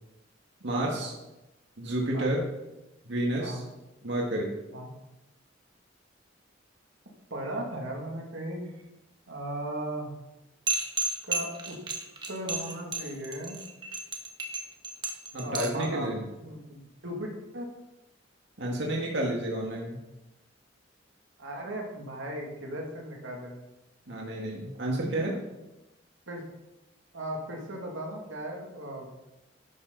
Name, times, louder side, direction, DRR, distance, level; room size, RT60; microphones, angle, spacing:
voice 1, 0.6-1.1 1.8-2.4 3.1-3.6 4.0-4.5 15.3-16.2 18.6-20.0 24.1-25.4, right 1 dB, 65° right, -2 dB, 2.0 m, -30 dB
voice 2, 7.3-8.7 9.3-10.1 11.3-11.8 12.3-13.6 15.4-16.1 16.4-17.7 21.4-23.6 26.3-26.4 27.1-29.3, right 1 dB, 90° right, 0 dB, 2.5 m, -37 dB
sound 1, 10.7-15.9, right 3 dB, 25° right, 1.5 m, -32 dB
12.0 x 10.5 x 4.1 m, 0.98 s
head